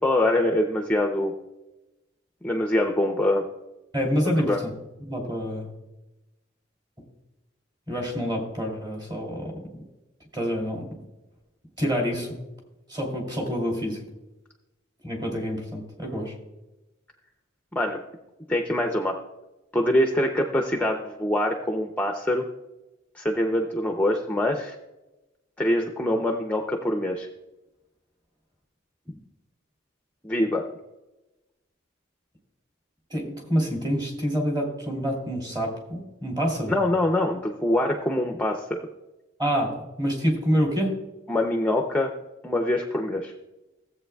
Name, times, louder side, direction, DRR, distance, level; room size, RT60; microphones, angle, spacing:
voice 1, 0.0-1.3 2.4-3.4 4.4-4.6 17.8-18.0 18.5-19.2 19.7-22.4 23.1-24.8 25.6-27.3 30.2-30.7 36.7-38.7 41.3-42.1 42.4-43.3, left 1 dB, 10° left, 3 dB, 0.6 m, -24 dB
voice 2, 3.9-4.7 5.1-5.7 7.9-9.5 10.3-10.9 11.8-12.3 12.9-14.0 15.0-16.3 33.1-36.7 39.4-41.0, equal, 20° right, 0 dB, 2.8 m, -27 dB
16.0 x 8.0 x 2.3 m, 0.99 s
head